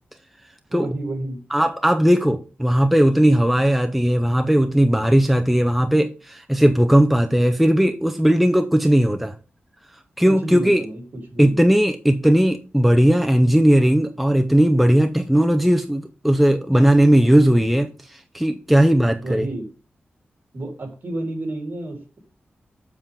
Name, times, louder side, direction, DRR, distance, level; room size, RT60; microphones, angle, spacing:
voice 1, 0.7-1.4 10.2-11.0 11.3-11.5 19.2-19.7 20.5-22.2, right 2 dB, 50° right, 3.1 m, -30 dB
voice 2, 1.5-9.3 10.2-10.8 11.4-19.5, right 1 dB, ahead, 0.5 m, -17 dB
7.2 x 7.1 x 3.5 m
wide cardioid pair, 135°, 4 cm